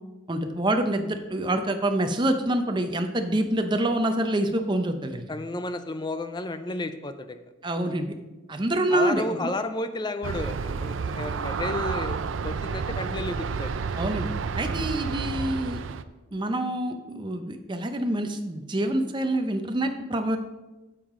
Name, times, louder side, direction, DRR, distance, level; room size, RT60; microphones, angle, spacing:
voice 1, 0.3-5.3 7.6-8.1 8.5-9.5 14.0-15.8 16.3-20.4, right 1 dB, 25° right, 6 dB, 0.6 m, -26 dB
voice 2, 5.3-7.4 8.9-12.2 12.4-13.8, left 2 dB, 20° left, 10 dB, 0.5 m, -32 dB
Aircraft, 10.2-16.0, right 5 dB, 90° right, 0.4 m, -30 dB
9.7 x 7.3 x 3.7 m, 1.1 s
head